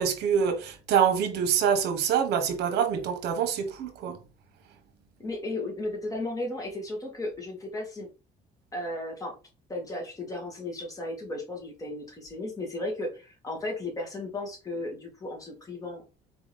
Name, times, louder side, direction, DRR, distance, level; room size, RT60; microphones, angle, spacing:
voice 1, 0.0-4.2, right 7 dB, 80° right, 1.1 m, -25 dB
voice 2, 5.2-8.1 8.7-9.3 9.7-16.1, left 2 dB, 20° left, 1.9 m, -35 dB
4.4 x 3.0 x 3.4 m
cardioid pair, 110°, 17 cm